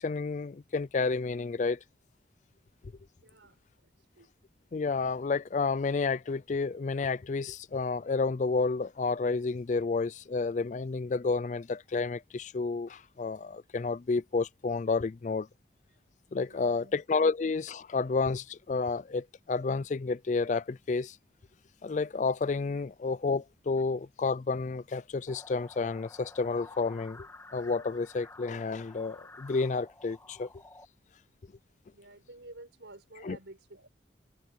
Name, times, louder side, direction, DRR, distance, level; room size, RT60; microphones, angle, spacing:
voice 1, 0.0-1.8 4.7-15.5 16.3-21.2 21.8-27.3 27.5-30.5 33.2-33.4, left 4 dB, 40° left, 0.4 m, -30 dB
voice 2, 3.2-4.3 16.4-17.0 22.7-22.8 31.9-33.9, right 2 dB, 90° right, 5.1 m, -52 dB
sound 1, 25.3-30.9, left 2 dB, 15° left, 1.7 m, -51 dB
head